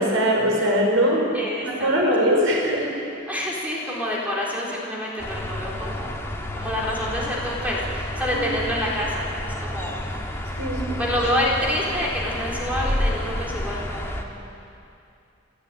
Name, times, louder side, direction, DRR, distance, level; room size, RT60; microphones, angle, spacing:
voice 1, 0.0-1.2 1.6-2.9 8.3-8.4 10.6-10.8, equal, 80° right, 0 dB, 5.0 m, -21 dB
voice 2, 1.3-1.9 2.2-2.3 3.3-6.1 6.5-9.9 11.0-14.2, left 1 dB, 10° right, -4 dB, 4.1 m, -27 dB
sound 1, 5.2-14.2, left 1 dB, 15° left, 1.9 m, -30 dB
29.5 x 13.5 x 9.3 m, 2.6 s
head